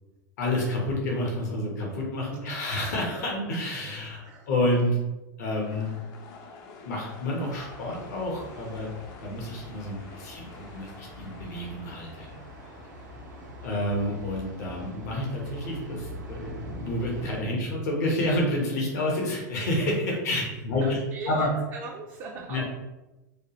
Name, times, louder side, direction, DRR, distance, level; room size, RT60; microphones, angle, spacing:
voice 1, 0.4-4.2 4.5-5.0 5.4-5.9 6.8-8.9 9.2-10.5 10.7-12.3 13.6-21.0 21.3-21.5 22.5-22.6, left 1 dB, 60° left, -2 dB, 0.9 m, -29 dB
voice 2, 4.0-4.5 13.1-13.5 20.8-22.6, right 3 dB, 35° right, -2 dB, 0.5 m, -40 dB
sound 1, 5.5-14.9, left 4 dB, 40° left, 0.5 m, -50 dB
Thunder, 7.4-17.4, equal, 70° right, 0.7 m, -43 dB
3.2 x 2.3 x 2.9 m, 1.0 s
hypercardioid pair, 95°, 10 cm